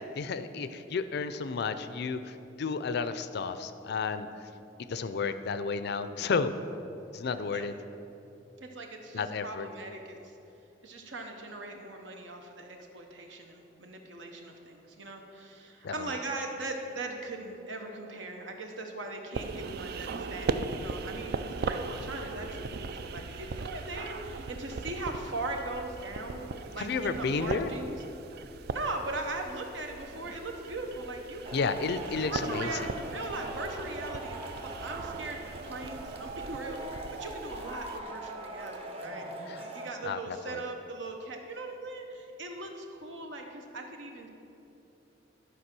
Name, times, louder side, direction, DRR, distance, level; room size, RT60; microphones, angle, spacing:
voice 1, 0.0-4.5 4.9-6.5 7.1-7.7 9.1-9.7 15.8-16.2 26.8-27.7 31.5-32.9 39.5-39.8 40.0-40.6, left 4 dB, 60° left, 11 dB, 0.4 m, -32 dB
voice 2, 8.6-10.3 10.8-26.4 26.7-28.0 28.7-31.4 32.3-44.3, right 2 dB, 80° right, 3 dB, 1.1 m, -39 dB
sound 1, 19.3-38.0, right 4 dB, 60° right, 0.4 m, -39 dB
Male speech man speaking / Shout / Clapping, 31.5-39.9, right 2 dB, 35° right, 0.9 m, -41 dB
11.5 x 4.9 x 6.1 m, 2.8 s
head